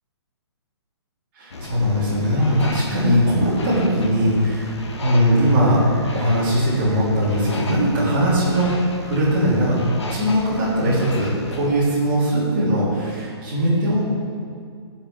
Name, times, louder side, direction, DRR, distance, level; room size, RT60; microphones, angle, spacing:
voice 1, 1.3-4.7 5.0-5.8 6.1-9.8 10.1-14.0, equal, 25° right, -11 dB, 3.4 m, -20 dB
sound 1, 1.5-11.7, left 2 dB, 80° left, 1.7 m, -34 dB
21.0 x 7.3 x 3.5 m, 2.2 s
hypercardioid pair, 175°, 14 cm